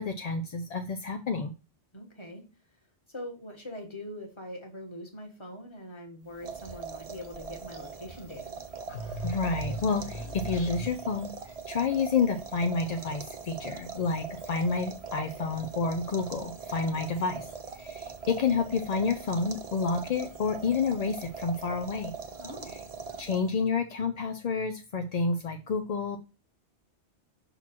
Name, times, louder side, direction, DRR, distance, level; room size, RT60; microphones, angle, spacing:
voice 1, 0.0-1.5 9.2-17.5 17.7-22.1 23.2-26.2, left 4 dB, 50° left, 6 dB, 0.5 m, -29 dB
voice 2, 1.9-2.4 3.1-8.6 22.4-22.8, left 1 dB, 25° left, 2 dB, 1.4 m, -43 dB
sound 1, 6.3-23.7, right 5 dB, 35° right, 0.7 m, -41 dB
sound 2, 8.9-11.2, equal, 75° left, 1.7 m, -37 dB
6.0 x 4.0 x 4.4 m, 0.30 s
omnidirectional pair, 1.2 m